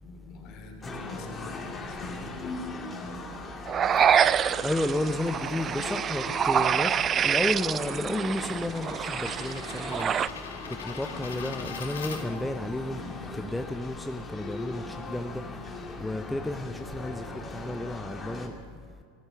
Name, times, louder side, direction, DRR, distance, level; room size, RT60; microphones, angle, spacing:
voice 1, 0.0-3.5 6.2-6.4, left 3 dB, 50° left, 2.9 m, -48 dB
sound 1, 0.8-18.5, left 3 dB, 20° left, 2.2 m, -39 dB
sound 2, 3.7-12.7, left 6 dB, 80° left, 1.8 m, -44 dB
sound 3, 3.7-10.3, right 8 dB, 30° right, 0.4 m, -26 dB
voice 2, 4.6-10.1 10.8-13.0 13.3-15.4 16.0-18.5, left 1 dB, 5° left, 0.6 m, -32 dB
15.0 x 12.5 x 6.9 m
hypercardioid pair, 85°, 0 cm